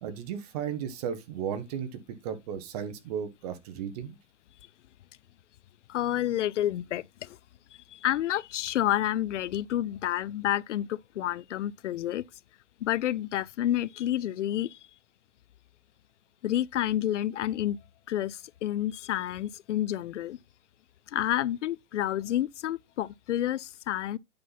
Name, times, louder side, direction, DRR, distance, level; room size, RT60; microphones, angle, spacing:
voice 1, 0.0-4.2, right 8 dB, 30° right, 1.1 m, -35 dB
voice 2, 5.9-7.4 7.9-12.3 12.8-14.8 16.4-17.8 18.1-20.4 21.1-24.2, left 12 dB, 75° left, 0.6 m, -29 dB
8.7 x 5.7 x 4.0 m
hypercardioid pair, 160°, 36 cm